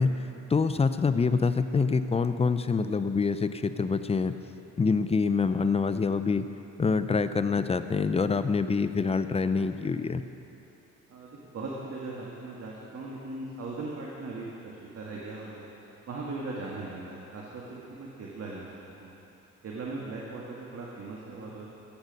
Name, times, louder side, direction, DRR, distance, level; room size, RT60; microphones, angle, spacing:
voice 1, 0.0-4.4 4.8-6.5 6.8-10.2, left 4 dB, 20° left, 11 dB, 0.5 m, -26 dB
voice 2, 11.1-15.6 16.1-18.7 19.0-19.1 19.6-21.7, right 3 dB, 55° right, -4 dB, 1.8 m, -39 dB
16.5 x 8.1 x 5.3 m, 2.9 s
cardioid pair, 90°, 30 cm